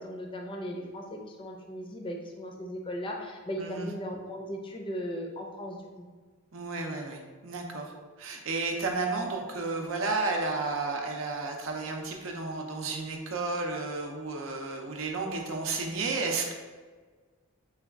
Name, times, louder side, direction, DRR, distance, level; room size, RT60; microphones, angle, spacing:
voice 1, 0.0-6.1, equal, 25° left, 1 dB, 0.4 m, -37 dB
voice 2, 3.6-3.9 6.5-7.9 8.2-16.5, right 3 dB, 70° right, 2 dB, 0.6 m, -32 dB
4.1 x 2.3 x 3.5 m, 1.4 s
head